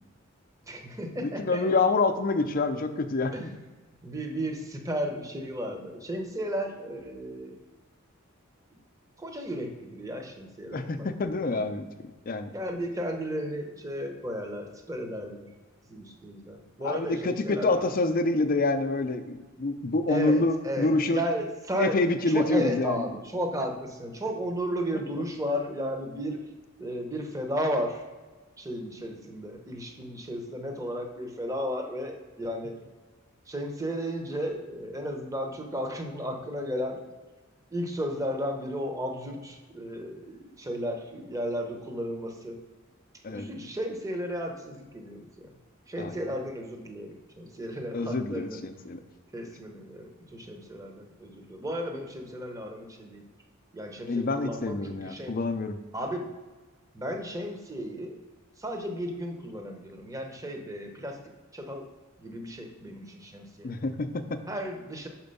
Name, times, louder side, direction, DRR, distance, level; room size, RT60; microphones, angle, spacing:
voice 1, 0.7-1.7 3.3-3.5 4.0-7.6 9.2-11.6 12.5-15.5 15.9-17.9 20.1-26.4 26.8-28.0 28.6-32.8 33.5-37.0 37.7-42.6 43.3-45.5 45.9-48.6 49.3-53.2 53.7-55.4 55.9-56.3 56.9-58.2 58.6-61.2 61.5-61.9 62.2-63.7 64.5-65.1, equal, 15° right, 3 dB, 0.8 m, -34 dB
voice 2, 1.2-3.5 10.7-11.9 12.3-12.5 16.8-21.2 21.8-23.1 43.2-43.5 46.0-46.2 47.9-49.0 54.1-55.8 63.6-64.4, left 3 dB, 45° left, 9 dB, 0.5 m, -27 dB
5.9 x 4.4 x 5.4 m, 1.3 s
head